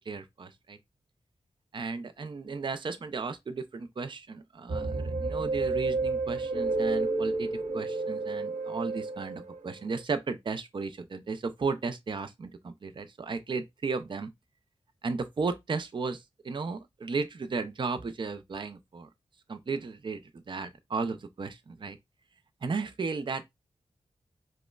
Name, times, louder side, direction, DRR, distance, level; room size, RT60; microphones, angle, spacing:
voice 1, 0.1-0.8 1.7-7.5 7.7-14.3 15.0-19.1 19.5-22.0 22.6-23.5, right 4 dB, 45° right, 0.4 m, -34 dB
sound 1, 4.7-9.7, right 3 dB, 85° right, 0.8 m, -30 dB
5.0 x 2.1 x 2.3 m
wide cardioid pair, 85°, 12 cm